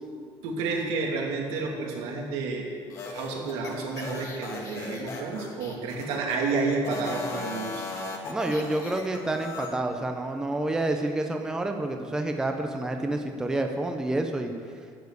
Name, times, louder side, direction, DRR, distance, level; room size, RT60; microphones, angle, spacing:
voice 1, 0.4-2.7 3.1-7.9, right 4 dB, 80° right, -1 dB, 2.6 m, -30 dB
sound 1, 2.9-6.4 6.8-9.7, left 3 dB, 35° left, 1.5 m, -38 dB
voice 2, 8.3-14.5, right 2 dB, 5° right, 4 dB, 0.6 m, -28 dB
11.0 x 7.4 x 8.2 m, 2.3 s
cardioid pair, 175°, 10 cm